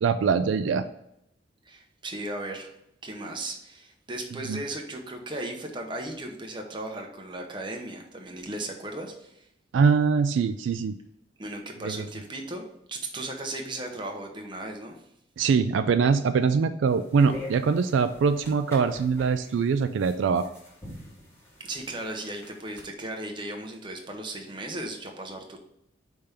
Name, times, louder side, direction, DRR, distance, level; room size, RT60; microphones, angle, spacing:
voice 1, 0.0-0.8 4.5-4.6 9.7-10.9 11.8-12.1 15.4-20.5, right 5 dB, 75° right, 10 dB, 0.3 m, -23 dB
voice 2, 1.7-2.8 3.0-9.5 11.4-12.6 12.9-15.0 21.6-25.6, right 1 dB, 25° right, 2 dB, 0.8 m, -36 dB
sound 1, 16.9-22.8, left 1 dB, 15° left, 1.4 m, -45 dB
5.1 x 3.5 x 5.6 m, 0.78 s
head